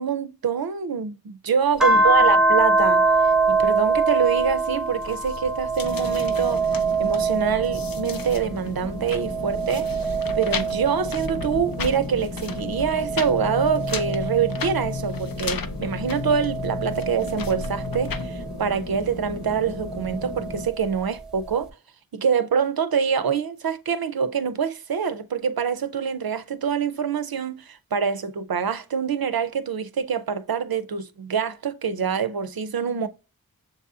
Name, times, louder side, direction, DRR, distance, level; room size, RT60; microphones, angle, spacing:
voice 1, 0.0-3.0 3.5-6.7 7.0-9.9 10.3-21.7 22.1-33.1, right 7 dB, 90° right, 0.5 m, -25 dB
sound 1, 1.8-8.5 9.0-11.9 12.5-15.2 16.0-18.4 19.8-20.9, right 3 dB, ahead, 0.8 m, -24 dB
sound 2, 5.0-18.3, left 5 dB, 70° left, 0.5 m, -34 dB
sound 3, 5.8-20.7, left 2 dB, 55° left, 0.9 m, -36 dB
7.1 x 2.7 x 2.3 m
wide cardioid pair, 45°, 35 cm